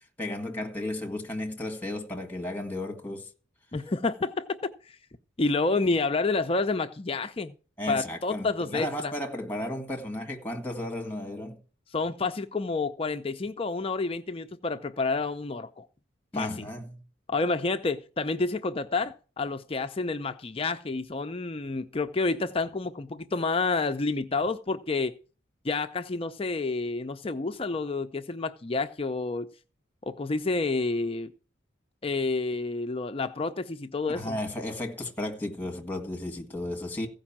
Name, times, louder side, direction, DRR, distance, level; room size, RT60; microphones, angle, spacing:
voice 1, 0.2-3.3 7.8-11.6 16.3-16.9 34.1-37.1, left 1 dB, 10° left, 2.0 m, -34 dB
voice 2, 3.7-5.0 5.4-7.5 7.9-9.1 11.9-15.8 16.3-16.7 17.3-25.1 25.6-29.5 30.0-31.3 32.0-34.4, left 3 dB, 30° left, 0.5 m, -29 dB
15.5 x 5.3 x 7.2 m
head